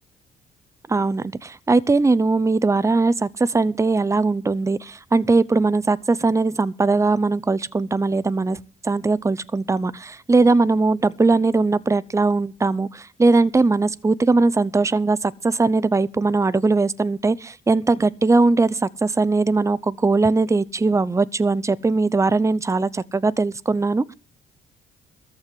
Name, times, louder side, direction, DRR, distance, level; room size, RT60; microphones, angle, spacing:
voice 1, 0.9-8.6 8.8-24.1, right 3 dB, 15° right, 0.7 m, -20 dB
14.0 x 5.7 x 9.3 m
cardioid pair, 90°, 20 cm